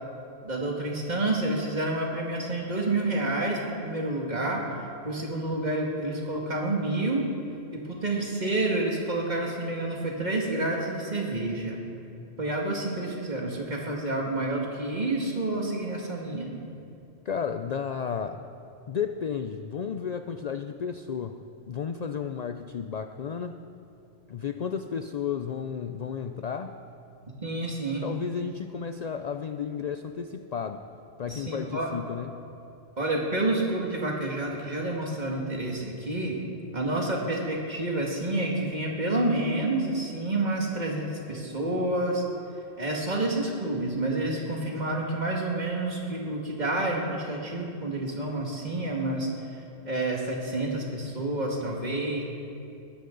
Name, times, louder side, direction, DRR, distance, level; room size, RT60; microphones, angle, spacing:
voice 1, 0.4-4.6 5.0-7.3 7.7-11.8 12.4-16.5 27.4-28.1 31.3-31.9 33.0-36.4 36.7-42.2 42.8-49.3 49.9-52.2, right 2 dB, 35° right, -1 dB, 2.1 m, -29 dB
voice 2, 17.3-18.5 18.9-23.6 24.3-26.7 28.0-30.8 31.2-32.5, left 7 dB, 70° left, 8 dB, 0.3 m, -33 dB
20.5 x 12.0 x 3.9 m, 2.6 s
omnidirectional pair, 1.3 m